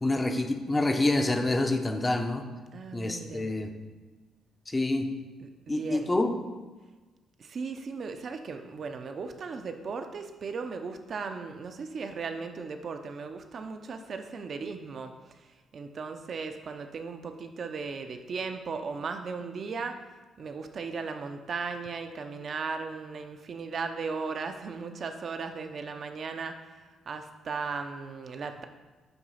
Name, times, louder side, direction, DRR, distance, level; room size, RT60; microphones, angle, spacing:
voice 1, 0.0-2.5 2.9-3.7 4.7-5.1 5.7-6.4, left 2 dB, 20° left, 6 dB, 0.7 m, -27 dB
voice 2, 2.7-3.5 5.4-6.1 7.4-15.1 15.7-19.9 20.4-26.5 27.1-28.6, right 4 dB, 50° right, 6 dB, 0.6 m, -36 dB
7.8 x 3.0 x 5.7 m, 1.3 s
cardioid pair, 90°, 0 cm